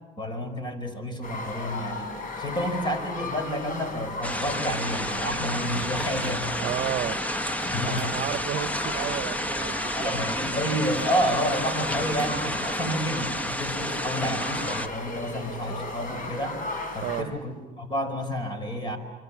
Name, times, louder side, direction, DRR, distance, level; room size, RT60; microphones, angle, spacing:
voice 1, 0.2-6.5 7.7-8.2 9.9-16.6 16.9-19.0, equal, 25° left, 9 dB, 5.1 m, -30 dB
sound 1, 1.2-17.2, left 3 dB, 55° left, 5.2 m, -36 dB
sound 2, 4.2-14.9, equal, 10° left, 1.1 m, -30 dB
sound 3, 6.2-6.4 8.0-8.3 9.6-9.9 11.0-11.1 12.2-12.3, right 4 dB, 20° right, 4.0 m, -44 dB
voice 2, 6.6-7.2 7.9-10.2 12.0-12.2 17.0-17.4, right 13 dB, 70° right, 14 dB, 0.8 m, -32 dB
27.0 x 25.0 x 7.2 m, 1.2 s
cardioid pair, 110°, 17 cm